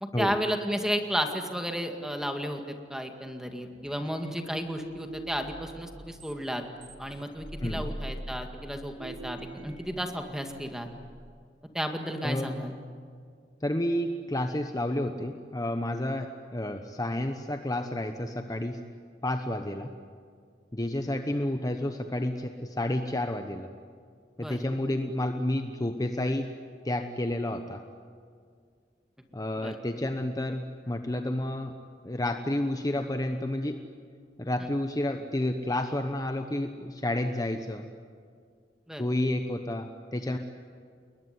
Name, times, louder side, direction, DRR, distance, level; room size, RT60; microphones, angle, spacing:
voice 1, 0.0-6.7 7.0-10.9 11.7-12.8 24.4-24.7 29.6-29.7 38.9-39.0, equal, 5° right, 5 dB, 2.1 m, -33 dB
sound 1, 3.5-11.3, right 1 dB, 70° right, 1.8 m, -44 dB
voice 2, 7.6-7.9 12.2-12.6 13.6-18.8 19.2-19.9 20.7-23.7 24.4-26.5 26.8-27.8 29.3-31.7 32.0-33.8 34.4-37.8 39.0-40.4, left 1 dB, 20° left, 6 dB, 1.0 m, -30 dB
28.5 x 21.0 x 9.6 m, 2.1 s
head